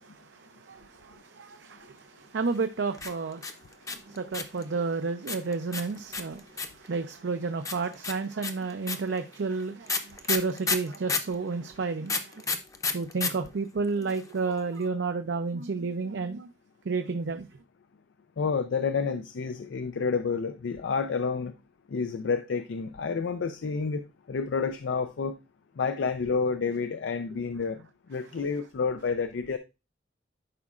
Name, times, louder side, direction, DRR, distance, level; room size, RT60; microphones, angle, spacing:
voice 1, 0.0-3.6 3.9-12.4 12.9-16.5 16.9-17.5, right 4 dB, 70° right, 0.5 m, -31 dB
sound 1, 2.9-4.6 5.3-6.9 7.6-11.3 12.1-13.3 13.6-13.7 13.8-14.3, left 4 dB, 20° left, 0.6 m, -30 dB
voice 2, 18.4-21.5 21.9-25.4 25.8-29.6, left 5 dB, 85° left, 0.4 m, -29 dB
11.0 x 4.8 x 2.4 m
head